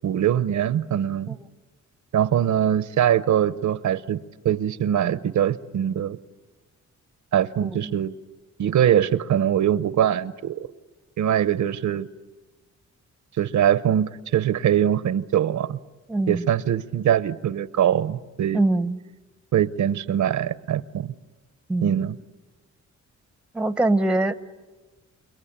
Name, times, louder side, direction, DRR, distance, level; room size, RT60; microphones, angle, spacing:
voice 1, 0.0-1.4 2.1-6.2 7.3-8.1 8.6-10.7 11.2-12.1 13.4-15.8 16.3-18.6 19.5-21.1 21.8-22.2, right 10 dB, 70° right, 15 dB, 0.8 m, -22 dB
voice 2, 16.1-16.4 18.5-19.0 21.7-22.0 23.5-24.3, right 2 dB, 5° right, 12 dB, 0.8 m, -22 dB
29.0 x 23.0 x 8.8 m, 1.2 s
wide cardioid pair, 125°, 30 cm